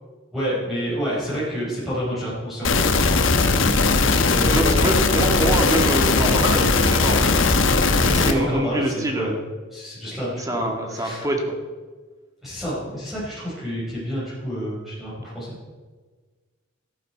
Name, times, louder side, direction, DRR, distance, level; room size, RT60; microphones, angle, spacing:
voice 1, 0.3-2.7 3.1-3.3 4.0-4.8 8.2-9.3 9.7-11.2 12.4-15.8, equal, ahead, -10 dB, 5.1 m, -29 dB
sound 1, 2.6-8.3, left 3 dB, 70° left, 1.2 m, -19 dB
voice 2, 4.5-7.2 7.9-9.3 10.4-11.5, right 1 dB, 20° right, 2 dB, 1.9 m, -25 dB
13.5 x 12.5 x 4.6 m, 1.4 s
head